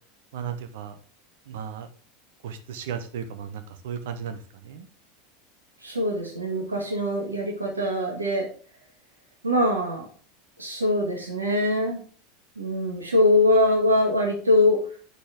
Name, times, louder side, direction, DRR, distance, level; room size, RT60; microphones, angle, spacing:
voice 1, 0.3-0.9 1.5-1.9 2.4-4.9, right 7 dB, 60° right, 9 dB, 1.0 m, -35 dB
voice 2, 5.8-8.5 9.4-10.1 10.6-12.0 12.6-14.8, left 1 dB, 80° right, 0 dB, 1.9 m, -22 dB
8.1 x 6.3 x 3.7 m, 0.43 s
figure-of-eight pair, 80°, 0 cm